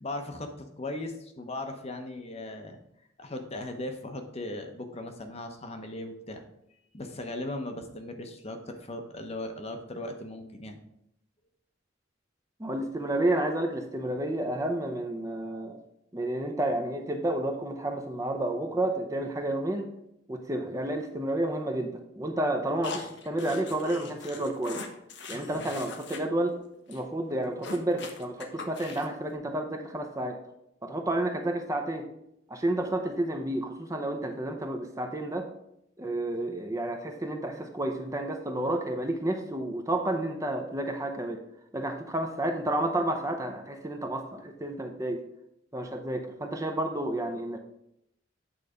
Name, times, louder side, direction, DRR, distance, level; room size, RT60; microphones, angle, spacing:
voice 1, 0.0-2.8 3.2-6.4 6.9-10.8, left 1 dB, 35° left, 5 dB, 0.8 m, -38 dB
voice 2, 12.6-15.8 16.1-19.9 20.3-21.9 22.2-24.8 25.3-26.5 26.9-30.4 30.8-32.1 32.5-35.4 36.0-41.4 41.7-45.2 45.7-47.6, right 1 dB, 15° right, 4 dB, 0.7 m, -30 dB
sound 1, 22.8-26.2 26.5-26.6 26.9-27.0 27.3-29.2, left 4 dB, 65° left, 0.9 m, -41 dB
8.7 x 4.0 x 5.0 m, 0.79 s
head